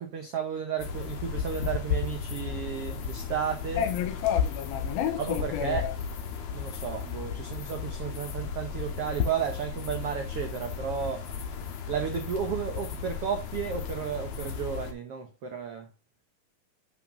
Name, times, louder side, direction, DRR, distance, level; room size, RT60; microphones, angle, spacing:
voice 1, 0.0-3.9 5.2-6.0 6.5-11.3 11.9-15.9, right 8 dB, 90° right, 1.3 m, -33 dB
sound 1, 0.8-14.9, left 7 dB, 60° left, 2.1 m, -34 dB
voice 2, 3.8-5.9, left 9 dB, 80° left, 2.8 m, -30 dB
10.5 x 6.0 x 2.8 m
omnidirectional pair, 4.3 m